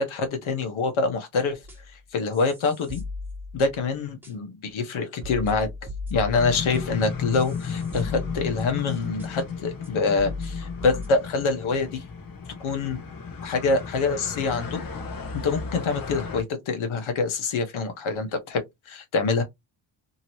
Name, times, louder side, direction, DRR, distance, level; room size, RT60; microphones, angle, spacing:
voice 1, 0.0-1.6 2.1-3.0 3.5-5.7 6.1-12.0 12.6-13.0 13.4-14.8 15.3-19.4, left 4 dB, 75° left, 1.1 m, -25 dB
sound 1, 1.6-2.0 2.3-3.9 4.2-4.3 4.9-5.0 5.2-8.9 9.2-9.3 9.8-9.9 10.2-11.1, left 3 dB, 5° right, 1.3 m, -37 dB
sound 2, 6.3-16.4, left 5 dB, 45° left, 0.9 m, -34 dB
2.9 x 2.7 x 3.0 m
cardioid pair, 135°, 49 cm